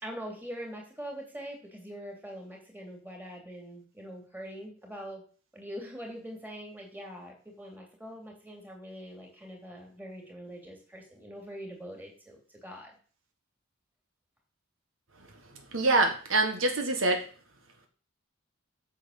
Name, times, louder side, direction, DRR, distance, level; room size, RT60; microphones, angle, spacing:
voice 1, 0.0-5.2 5.5-12.9, equal, 10° right, 1 dB, 2.9 m, -43 dB
voice 2, 15.7-17.2, right 2 dB, 70° right, 5 dB, 1.6 m, -25 dB
9.1 x 6.5 x 6.6 m, 0.42 s
head